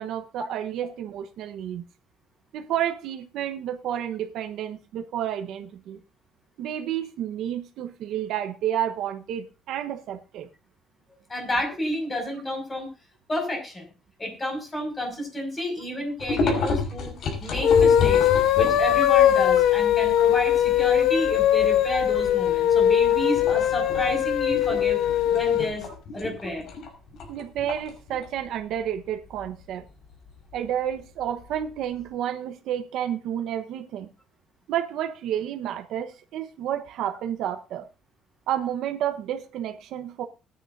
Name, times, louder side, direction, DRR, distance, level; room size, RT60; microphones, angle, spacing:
voice 1, 0.0-1.8 2.5-6.0 6.6-10.5 27.3-29.8 30.5-34.1 34.7-37.8 38.5-40.2, right 10 dB, 75° right, 1.1 m, -30 dB
voice 2, 11.3-12.9 13.3-13.9 14.2-17.1 17.4-18.3 18.6-25.0 25.3-25.8 26.1-26.7, left 1 dB, 20° left, 5.9 m, -30 dB
sound 1, 16.2-19.1 19.6-19.7 20.0-21.2 21.6-21.9 22.3-22.8 23.3-32.0, left 4 dB, 60° left, 5.0 m, -31 dB
sound 2, 17.5-25.7, left 10 dB, 80° left, 1.0 m, -20 dB
20.5 x 9.9 x 2.7 m
cardioid pair, 155°, 0 cm